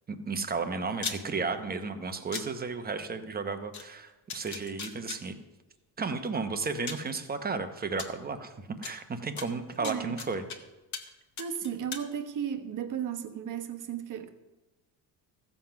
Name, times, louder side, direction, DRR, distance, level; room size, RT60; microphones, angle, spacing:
voice 1, 0.1-5.3 6.0-8.5 8.8-10.4, right 4 dB, 20° right, 0.9 m, -33 dB
sound 1, 0.9-1.2 2.3-2.4 3.7-3.8 4.3-5.2 6.3-6.4 6.9-7.1 8.0-8.1 8.8-8.9 9.4-10.6 10.9-11.1 11.4-12.0, left 6 dB, 35° left, 1.2 m, -37 dB
voice 2, 9.8-10.2 11.4-14.3, right 8 dB, 40° right, 1.1 m, -34 dB
14.5 x 7.7 x 5.8 m
cardioid pair, 140°, 49 cm